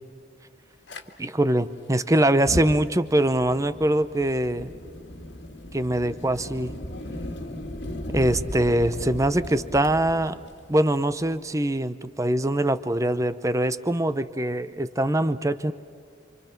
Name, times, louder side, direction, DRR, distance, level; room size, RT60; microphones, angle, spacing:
Fire, 0.9-1.0 2.3-11.4, left 1 dB, 60° left, 2.0 m, -36 dB
voice 1, 1.2-4.7 5.7-6.7 8.1-10.4 10.7-15.7, right 1 dB, 15° right, 12 dB, 0.8 m, -23 dB
29.0 x 26.0 x 5.9 m, 2.2 s
head